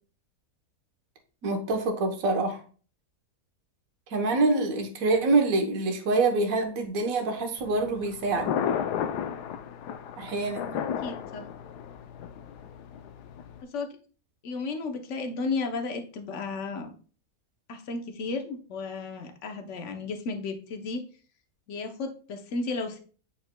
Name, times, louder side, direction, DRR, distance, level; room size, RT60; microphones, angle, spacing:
voice 1, 1.4-2.6 4.1-8.5 10.2-10.8, right 3 dB, 60° right, 4 dB, 1.4 m, -26 dB
Thunder, 7.6-13.6, left 8 dB, 90° left, 1.2 m, -33 dB
voice 2, 10.8-11.5 13.7-13.9 14.4-16.9 17.7-21.0 21.7-23.0, left 3 dB, 55° left, 6 dB, 1.1 m, -33 dB
8.8 x 5.0 x 2.2 m, 0.41 s
omnidirectional pair, 1.7 m